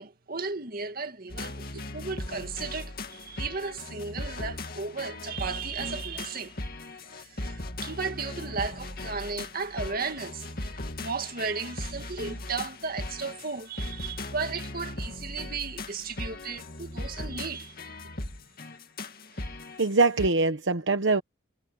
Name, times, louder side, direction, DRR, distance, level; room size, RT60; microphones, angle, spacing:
voice 1, 0.0-1.7 1.9-6.6 7.0-17.8, right 4 dB, 50° right, 2.2 m, -35 dB
sound 1, 1.3-20.3, left 2 dB, 50° left, 2.4 m, -38 dB
voice 2, 19.8-21.2, right 3 dB, 65° right, 1.1 m, -23 dB
head